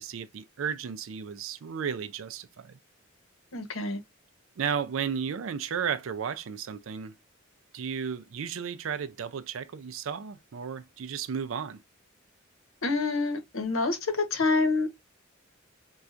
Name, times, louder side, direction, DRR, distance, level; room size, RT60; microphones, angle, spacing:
voice 1, 0.0-2.8 4.6-7.1 7.7-11.8, right 7 dB, 70° right, 0.4 m, -34 dB
voice 2, 3.5-4.0 12.8-14.9, left 3 dB, 80° left, 0.9 m, -27 dB
4.3 x 2.3 x 2.4 m
head